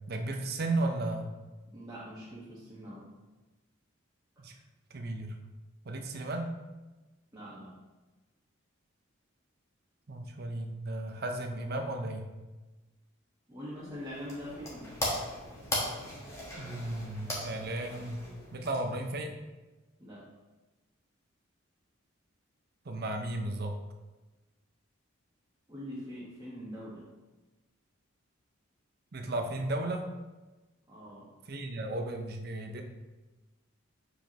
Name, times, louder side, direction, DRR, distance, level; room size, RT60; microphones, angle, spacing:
voice 1, 0.1-1.3 4.4-4.5 4.9-5.4 5.8-6.5 10.1-12.3 16.6-18.2 18.5-19.3 22.9-23.8 29.1-30.1 31.5-32.8, right 2 dB, 50° right, 4 dB, 0.6 m, -34 dB
voice 2, 1.7-3.1 7.3-7.7 13.5-14.9 20.0-20.2 25.7-27.1 30.9-31.3, equal, 15° right, -9 dB, 1.3 m, -43 dB
sound 1, 13.8-19.2, left 1 dB, 15° left, 1.3 m, -38 dB
7.4 x 4.9 x 3.0 m, 1.2 s
head